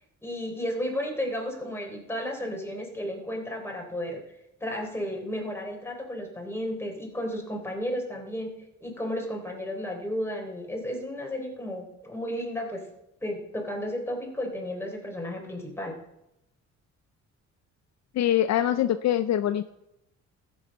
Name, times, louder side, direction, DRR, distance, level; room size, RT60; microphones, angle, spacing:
voice 1, 0.2-4.2 4.6-8.5 8.8-12.8 13.2-16.0, equal, 10° left, 0 dB, 3.8 m, -33 dB
voice 2, 18.1-19.7, left 11 dB, 60° left, 11 dB, 0.6 m, -24 dB
14.5 x 7.3 x 5.4 m, 0.84 s
cardioid pair, 90°, 30 cm